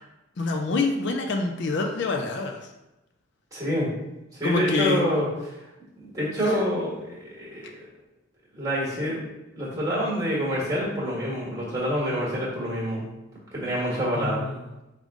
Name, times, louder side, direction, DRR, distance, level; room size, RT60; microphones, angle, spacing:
voice 1, 0.4-2.7 4.4-5.0 6.4-6.6 14.2-14.6, left 3 dB, 60° left, 3 dB, 0.4 m, -26 dB
voice 2, 3.5-3.9 4.4-5.3 6.0-7.9 8.5-9.2 9.5-13.0 13.5-14.5, equal, 15° right, -5 dB, 1.4 m, -27 dB
5.3 x 2.4 x 3.5 m, 0.95 s
head